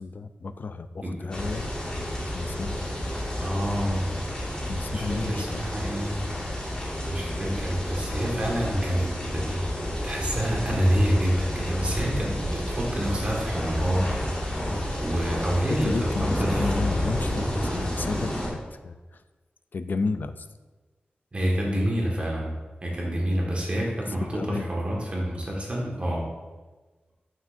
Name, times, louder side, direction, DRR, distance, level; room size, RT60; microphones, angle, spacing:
voice 1, 0.0-3.1 4.7-5.7 15.8-19.0 19.7-20.5 24.3-24.7, left 4 dB, 60° left, 11 dB, 0.4 m, -33 dB
sound 1, 1.3-18.5, left 1 dB, 25° left, 2.0 m, -30 dB
voice 2, 3.4-4.1 4.9-6.2 7.1-14.0 15.0-16.7 21.3-26.3, equal, 35° right, -3 dB, 1.7 m, -27 dB
9.3 x 6.1 x 2.6 m, 1.3 s
wide cardioid pair, 95°, 4 cm